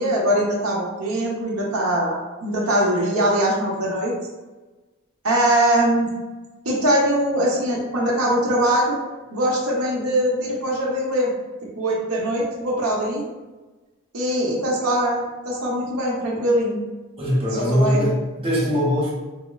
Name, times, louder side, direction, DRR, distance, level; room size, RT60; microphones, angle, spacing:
voice 1, 0.0-4.1 5.2-6.1 6.6-9.0 9.3-11.3 11.8-13.2 14.1-16.8 17.5-18.1, right 1 dB, 85° right, -3 dB, 0.8 m, -22 dB
voice 2, 17.2-19.1, equal, 25° right, -5 dB, 0.9 m, -21 dB
3.5 x 3.1 x 2.3 m, 1.2 s
head